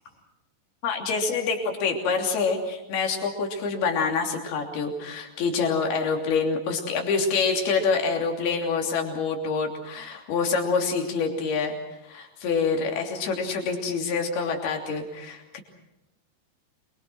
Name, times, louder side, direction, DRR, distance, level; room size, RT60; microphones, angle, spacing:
voice 1, 0.8-11.8 12.0-15.6, left 5 dB, 60° left, 2 dB, 4.8 m, -26 dB
26.5 x 23.5 x 6.3 m, 0.94 s
omnidirectional pair, 5.2 m